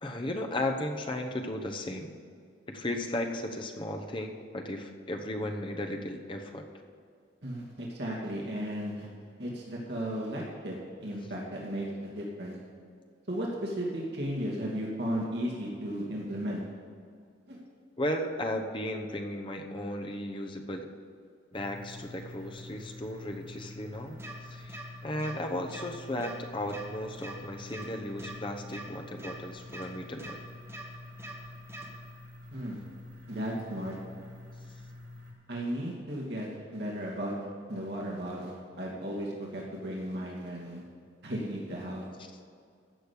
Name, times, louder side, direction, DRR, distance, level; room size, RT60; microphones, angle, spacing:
voice 1, 0.0-2.1 2.7-6.7 18.0-20.9 21.5-24.2 24.5-30.4, left 1 dB, 25° left, 3 dB, 0.9 m, -35 dB
voice 2, 7.4-9.1 9.4-12.5 13.3-16.6 17.5-17.6 32.5-32.8 33.3-34.0 35.5-37.4 37.7-40.8 41.2-42.0, equal, 60° right, -3 dB, 2.5 m, -35 dB
sound 1, 21.5-35.3, left 2 dB, 85° right, 3.3 m, -47 dB
sound 2, 24.2-24.3 24.7-24.8 25.2-25.3 25.7-25.9 26.2-26.3 26.7-26.8 27.2-27.3 27.7-27.9 28.2-28.3 28.7-28.8 29.2-29.3 29.7-29.9 30.2-30.3 30.7-30.8 31.2-31.3 31.7-31.9, right 2 dB, 15° right, 1.8 m, -42 dB
15.0 x 6.5 x 8.4 m, 2.2 s
head